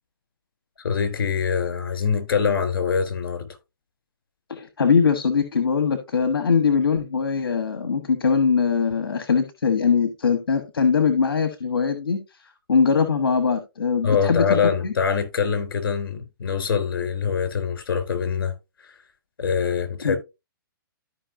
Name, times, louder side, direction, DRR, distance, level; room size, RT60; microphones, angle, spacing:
voice 1, 0.8-3.5 14.0-18.5 18.8-19.0 19.4-20.2, left 6 dB, 70° left, 3.4 m, -24 dB
voice 2, 4.5-12.2 12.7-14.6 14.8-14.9 20.0-20.1, left 5 dB, 90° left, 1.3 m, -21 dB
13.5 x 5.4 x 2.6 m
hypercardioid pair, 145°, 12 cm